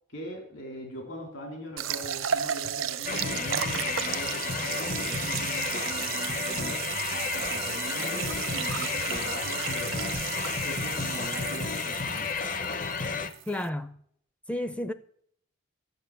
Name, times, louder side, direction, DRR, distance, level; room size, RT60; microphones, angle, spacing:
voice 1, 0.1-10.2 10.6-12.6, equal, 65° left, 3.4 m, -41 dB
sound 1, 1.8-13.7, right 10 dB, 75° right, 0.6 m, -34 dB
sound 2, 3.0-13.3, left 5 dB, 40° left, 0.7 m, -32 dB
voice 2, 13.5-14.0 14.5-14.9, left 1 dB, 5° left, 0.4 m, -31 dB
12.0 x 7.0 x 8.8 m
head